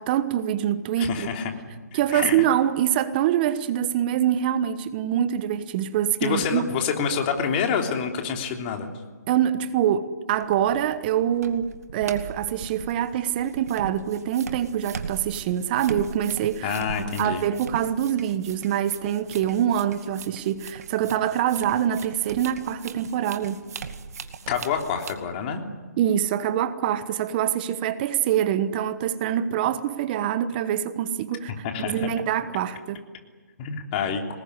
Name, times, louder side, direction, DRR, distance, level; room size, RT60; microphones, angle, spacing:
voice 1, 0.0-1.3 1.9-6.6 9.3-16.8 17.2-23.6 26.0-31.5 31.8-33.0, right 10 dB, 30° right, 1.3 m, -25 dB
voice 2, 1.0-1.5 2.1-2.4 6.2-8.9 16.6-17.4 24.5-25.6 31.6-32.1 33.6-34.2, left 6 dB, 30° left, 3.4 m, -27 dB
sound 1, 10.3-25.2, right 6 dB, 60° right, 2.2 m, -40 dB
24.0 x 20.5 x 9.9 m
hypercardioid pair, 150°, 10 cm